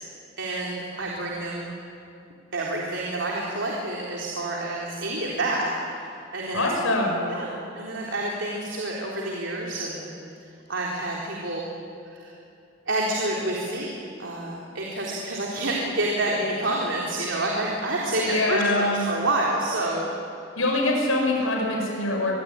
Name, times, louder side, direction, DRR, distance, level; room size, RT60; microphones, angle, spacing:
voice 1, 0.4-1.7 2.5-5.7 6.0-6.7 7.3-7.5 7.7-10.1 10.7-11.7 12.1-12.3 12.9-13.9 14.2-20.1, right 2 dB, 65° right, -3 dB, 3.9 m, -28 dB
voice 2, 6.5-7.2 18.2-19.1 20.6-22.3, left 2 dB, 85° left, 1 dB, 5.8 m, -24 dB
25.5 x 23.0 x 9.8 m, 2.7 s
head